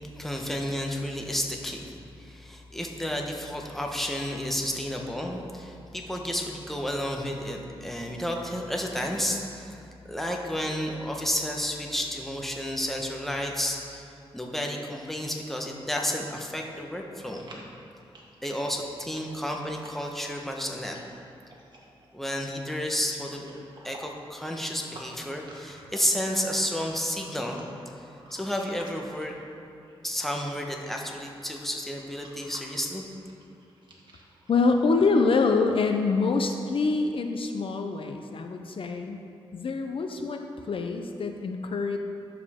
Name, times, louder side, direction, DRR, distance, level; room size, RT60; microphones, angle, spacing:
voice 1, 0.1-9.8 10.0-14.0 14.3-17.5 18.4-21.0 22.1-23.5 23.8-27.7 28.0-28.1 28.3-29.3 30.0-33.0, equal, ahead, 0 dB, 1.1 m, -31 dB
sound 1, 17.3-29.5 29.8-34.5, right 1 dB, 50° right, 1.6 m, -51 dB
voice 2, 34.5-39.2 39.5-42.0, left 4 dB, 60° left, 5 dB, 0.6 m, -25 dB
11.0 x 7.1 x 3.7 m, 2.5 s
cardioid pair, 75°, 10 cm